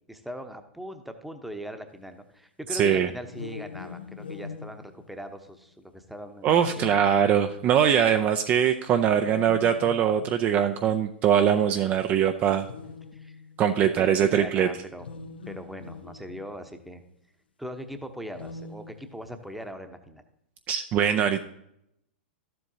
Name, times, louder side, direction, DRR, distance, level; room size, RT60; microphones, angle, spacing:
voice 1, 0.1-7.0 13.1-13.4 13.8-15.1 15.5-17.0 17.6-20.2, equal, ahead, 7 dB, 0.9 m, -40 dB
voice 2, 2.7-3.1 6.4-12.7 13.6-14.7 20.7-21.4, right 9 dB, 30° right, 7 dB, 0.5 m, -22 dB
sound 1, 3.2-5.7 6.6-7.8 8.8-10.7 11.5-11.6 12.6-13.6 14.9-16.7 18.2-19.5, left 5 dB, 75° left, 0.6 m, -42 dB
13.0 x 7.6 x 2.8 m, 0.78 s
figure-of-eight pair, 100°, 5 cm